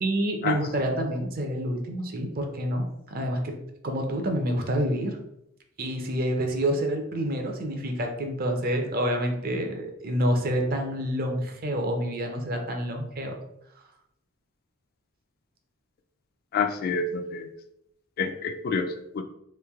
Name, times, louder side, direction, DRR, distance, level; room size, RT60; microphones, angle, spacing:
voice 1, 0.0-3.6 3.8-5.2 5.8-13.3, equal, 45° right, 3 dB, 0.6 m, -28 dB
voice 2, 16.5-17.5 18.2-18.8 19.1-19.2, left 5 dB, 45° left, 7 dB, 0.3 m, -27 dB
3.2 x 2.6 x 3.4 m, 0.79 s
head